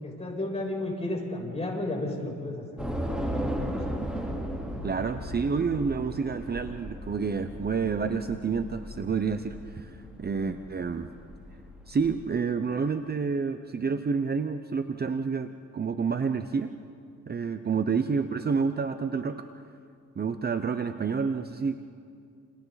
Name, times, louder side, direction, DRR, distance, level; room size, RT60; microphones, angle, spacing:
voice 1, 0.0-2.8 3.2-3.8, left 1 dB, 20° left, -2 dB, 7.8 m, -33 dB
Train / Subway metro underground, 2.8-12.2, equal, 5° right, 3.7 m, -36 dB
voice 2, 4.8-11.1 11.9-16.7 17.3-19.5 20.2-21.8, right 5 dB, 30° right, 9 dB, 0.9 m, -29 dB
30.0 x 29.0 x 4.2 m, 2.3 s
cardioid pair, 90°, 30 cm